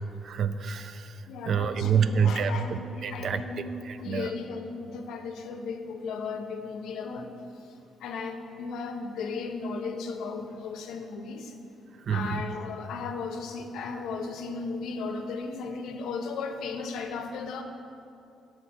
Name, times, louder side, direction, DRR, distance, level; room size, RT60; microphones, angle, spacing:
voice 1, 0.2-3.4 3.8-4.3 12.0-12.4, right 6 dB, 60° right, 11 dB, 0.3 m, -27 dB
voice 2, 1.3-11.6 12.1-17.6, left 4 dB, 80° left, 6 dB, 0.5 m, -36 dB
6.1 x 4.3 x 6.1 m, 2.8 s
cardioid pair, 90°, 0 cm